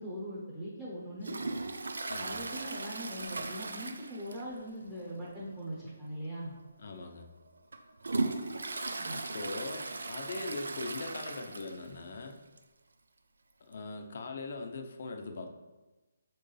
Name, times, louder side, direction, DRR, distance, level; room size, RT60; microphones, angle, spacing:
voice 1, 0.0-1.6 2.2-6.6 9.0-9.2, equal, 5° right, -9 dB, 1.0 m, -41 dB
Toilet flush, 1.2-4.7 4.9-5.0 5.5-5.6 6.4-6.5 7.1-12.0 12.3-12.4 12.6-12.7 13.7-13.8, right 3 dB, 90° right, 0.6 m, -37 dB
voice 2, 2.1-2.4 6.8-7.3 9.3-12.4 13.6-15.5, left 3 dB, 50° left, 5 dB, 0.7 m, -41 dB
6.6 x 4.4 x 3.3 m, 1.1 s
hypercardioid pair, 170°, 0 cm